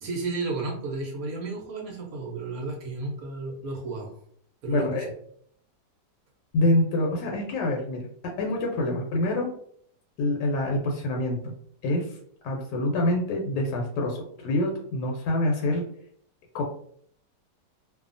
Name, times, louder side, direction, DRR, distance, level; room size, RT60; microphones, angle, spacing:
voice 1, 0.0-4.1 4.6-5.1, right 3 dB, 65° right, 0 dB, 1.0 m, -32 dB
voice 2, 4.7-5.1 6.5-8.1 8.4-9.5 10.2-11.5 11.8-12.1 12.4-15.8 16.5-16.6, left 1 dB, 80° left, 0 dB, 1.2 m, -26 dB
2.6 x 2.3 x 2.5 m, 0.64 s
omnidirectional pair, 1.9 m